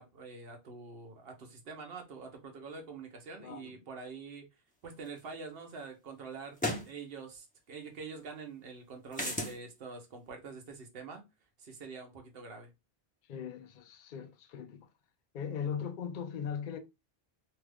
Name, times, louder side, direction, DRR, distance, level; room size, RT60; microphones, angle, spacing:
voice 1, 0.0-4.4 4.8-6.6 6.8-11.2 11.6-12.7 15.5-15.7, right 4 dB, 60° right, 1.1 m, -46 dB
voice 2, 3.4-3.8 13.3-14.9 15.3-16.8, left 7 dB, 55° left, 0.6 m, -39 dB
sound 1, 5.2-5.3 6.6-6.9 9.1-9.6, left 1 dB, 10° left, 0.6 m, -33 dB
2.9 x 2.4 x 3.3 m
omnidirectional pair, 1.1 m